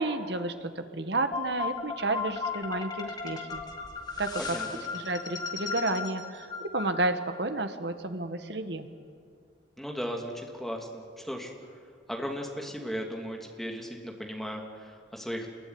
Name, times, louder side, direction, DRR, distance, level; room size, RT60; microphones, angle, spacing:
voice 1, 0.0-3.6 4.2-4.4 4.9-6.5 6.7-8.9, right 2 dB, 65° right, 7 dB, 1.8 m, -31 dB
sound 1, 1.3-7.4, left 5 dB, 20° left, 2.0 m, -36 dB
voice 2, 4.4-4.8 9.8-11.5 12.1-15.5, equal, ahead, 1 dB, 2.9 m, -36 dB
27.5 x 22.0 x 9.8 m, 2.2 s
head